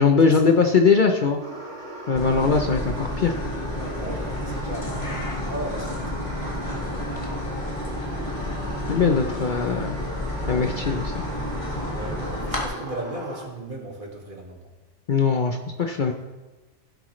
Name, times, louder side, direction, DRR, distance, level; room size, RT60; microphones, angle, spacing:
voice 1, 0.0-1.4 2.1-3.4 8.9-10.0 10.5-11.2 15.1-16.1, left 5 dB, 50° left, 4 dB, 0.8 m, -20 dB
sound 1, 1.4-13.5, right 1 dB, 70° right, 2.0 m, -38 dB
sound 2, 2.2-12.6, left 1 dB, 25° left, 1.8 m, -31 dB
voice 2, 3.8-7.3 9.2-9.3 11.9-14.7, right 1 dB, 45° right, 0 dB, 2.1 m, -37 dB
16.5 x 7.7 x 3.2 m, 1.1 s
omnidirectional pair, 1.2 m